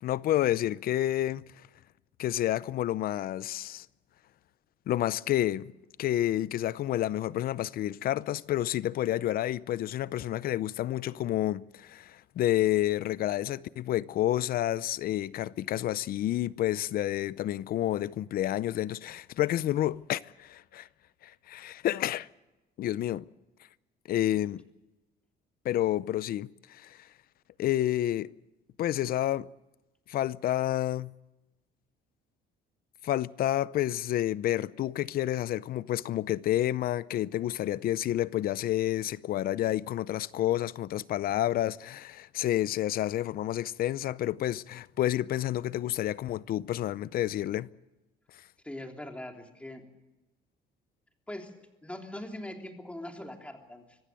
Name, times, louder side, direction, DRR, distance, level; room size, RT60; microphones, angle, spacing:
voice 1, 0.0-1.4 2.2-3.9 4.9-5.7 6.0-20.9 21.2-22.3 22.8-23.2 24.1-24.6 25.6-27.0 27.6-28.3 28.8-29.5 30.1-31.1 33.0-47.7, left 13 dB, 60° left, 0.6 m, -29 dB
voice 2, 48.6-49.9 51.3-54.0, left 1 dB, 5° left, 3.3 m, -42 dB
25.0 x 15.5 x 7.6 m
cardioid pair, 110°, 17 cm